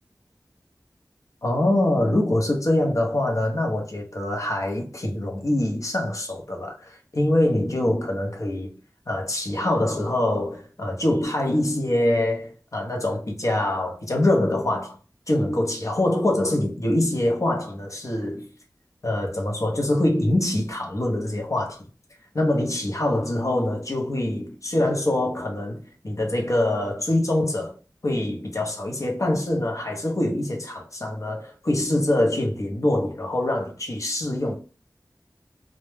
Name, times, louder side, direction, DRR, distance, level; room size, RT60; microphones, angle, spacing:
voice 1, 1.4-8.7 9.1-15.0 15.3-18.5 19.0-21.9 22.3-27.7 28.0-34.5, left 1 dB, 50° left, 0.7 m, -24 dB
2.1 x 2.0 x 3.2 m
wide cardioid pair, 55°, 7 cm